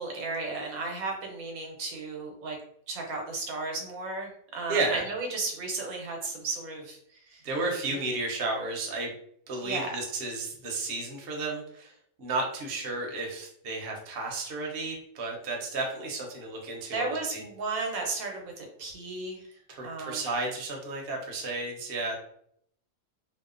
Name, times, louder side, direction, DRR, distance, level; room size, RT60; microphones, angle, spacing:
voice 1, 0.0-2.6 2.9-7.0 7.3-7.4 9.6-9.9 16.9-19.4 19.8-20.2, right 3 dB, 85° right, 1 dB, 1.1 m, -34 dB
voice 2, 4.7-5.0 7.4-9.1 9.5-11.9 12.2-17.4 19.7-22.1, right 3 dB, 55° right, 0 dB, 0.7 m, -32 dB
2.7 x 2.0 x 2.4 m, 0.68 s
omnidirectional pair, 1.4 m